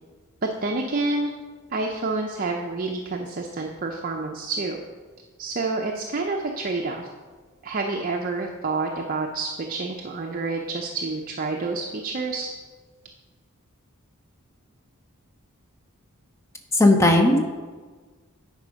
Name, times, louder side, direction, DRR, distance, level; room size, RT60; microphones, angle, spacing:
voice 1, 0.4-1.3 1.7-4.8 5.4-7.1 7.6-12.5, right 3 dB, 40° right, 1 dB, 0.5 m, -28 dB
voice 2, 16.7-17.4, left 1 dB, 15° left, 3 dB, 0.8 m, -16 dB
9.1 x 4.9 x 5.1 m, 1.4 s
head